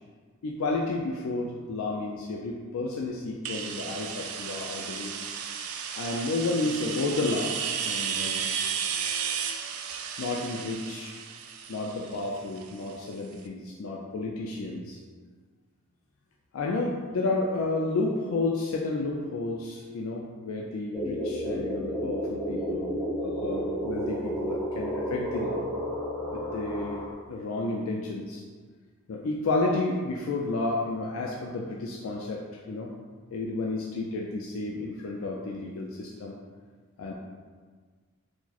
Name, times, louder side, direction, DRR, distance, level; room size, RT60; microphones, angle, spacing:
voice 1, 0.4-5.1 5.9-7.6 7.8-8.5 10.2-11.1 11.7-15.0 16.5-22.9 23.2-25.6 26.3-27.0 27.3-28.4 29.1-32.4 32.7-32.9 33.3-36.3 37.0-37.1, left 2 dB, 70° left, -1 dB, 0.4 m, -31 dB
sound 1, 3.4-13.1, right 7 dB, 80° right, 0.4 m, -33 dB
sound 2, 20.9-27.1, equal, 5° left, 0.8 m, -31 dB
4.7 x 2.0 x 4.1 m, 1.5 s
head